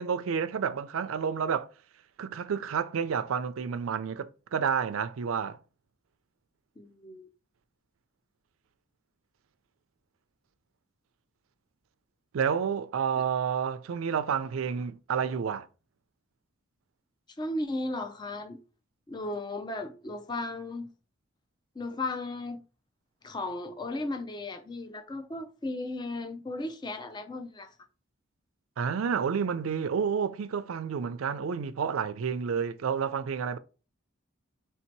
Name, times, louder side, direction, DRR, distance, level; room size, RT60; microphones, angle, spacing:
voice 1, 0.0-1.7 2.2-5.6 12.3-15.7 28.8-33.6, right 7 dB, 80° right, 0.4 m, -30 dB
voice 2, 6.8-7.3 13.2-13.3 17.4-18.6 19.1-20.9 21.8-22.6 23.2-27.7, left 2 dB, 20° left, 0.4 m, -35 dB
3.3 x 2.7 x 4.5 m
head